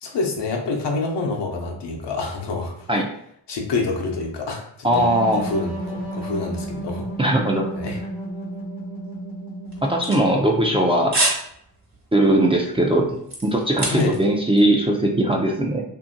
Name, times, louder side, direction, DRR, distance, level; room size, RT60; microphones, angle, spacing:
voice 1, 0.0-2.7 3.5-4.7 4.9-5.0 5.3-7.0 7.7-8.0 13.9-14.1, left 3 dB, 75° left, 1 dB, 0.8 m, -27 dB
voice 2, 4.8-5.5 7.2-7.7 9.8-11.2 12.1-15.8, right 1 dB, 15° right, 0 dB, 0.5 m, -19 dB
sound 1, 4.9-10.5, right 1 dB, 65° right, 1.0 m, -32 dB
sound 2, 9.7-10.8 11.1-11.5 11.8-12.0 12.5-14.3 14.6-14.7, right 2 dB, 40° right, 1.2 m, -25 dB
2.7 x 2.6 x 2.5 m, 0.71 s
cardioid pair, 50°, 43 cm